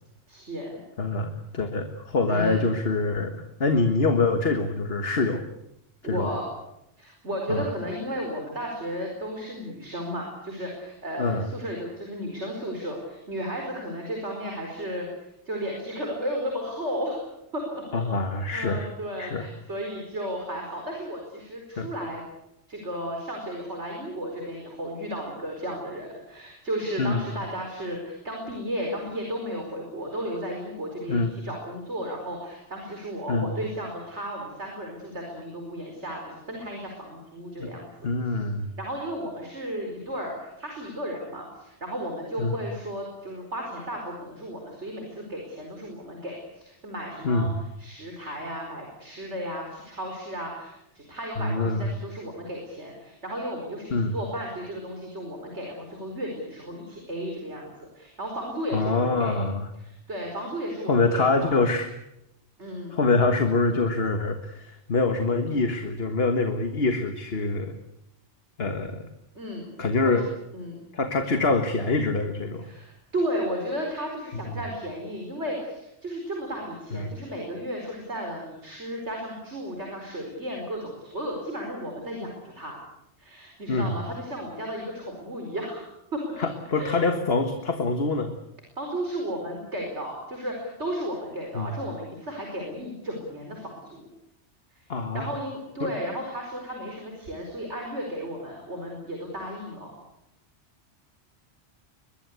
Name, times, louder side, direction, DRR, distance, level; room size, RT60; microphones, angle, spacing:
voice 1, 0.3-0.8 2.3-2.6 6.0-6.5 7.0-15.1 15.4-17.2 17.5-18.2 18.5-22.2 22.7-38.1 38.8-47.5 47.8-59.5 59.8-61.6 62.6-63.0 69.3-69.7 70.0-70.3 70.5-70.8 72.6-82.8 83.2-86.5 86.7-87.1 88.8-94.1 94.7-94.9 95.1-99.9, equal, 75° right, 1 dB, 5.0 m, -34 dB
voice 2, 1.0-5.4 6.0-6.4 7.5-7.7 11.2-11.5 17.9-18.9 19.2-19.5 21.8-21.9 27.0-27.2 31.1-31.3 33.3-33.5 37.6-37.7 38.0-38.7 42.4-42.6 47.2-47.6 51.4-51.9 53.9-54.1 58.7-59.7 60.9-61.9 62.9-67.8 68.6-69.0 69.8-70.2 70.9-72.7 76.9-77.1 83.7-83.9 86.4-88.3 91.5-91.8 94.9-95.3 95.8-95.9, left 3 dB, 60° left, 7 dB, 1.8 m, -25 dB
23.0 x 21.0 x 8.3 m, 0.83 s
omnidirectional pair, 1.2 m